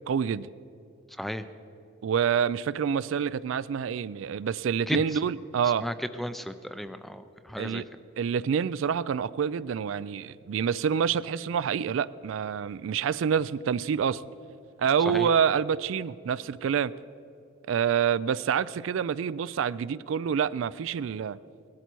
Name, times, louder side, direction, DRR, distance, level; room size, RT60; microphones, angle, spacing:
voice 1, 0.1-0.5 2.0-5.9 7.6-7.9 8.2-14.2 14.8-16.9 17.7-21.4, right 7 dB, 75° right, 17 dB, 0.3 m, -27 dB
voice 2, 5.8-7.2 7.5-7.8 15.1-15.3, equal, ahead, 11 dB, 0.4 m, -33 dB
17.5 x 12.5 x 4.6 m, 2.8 s
head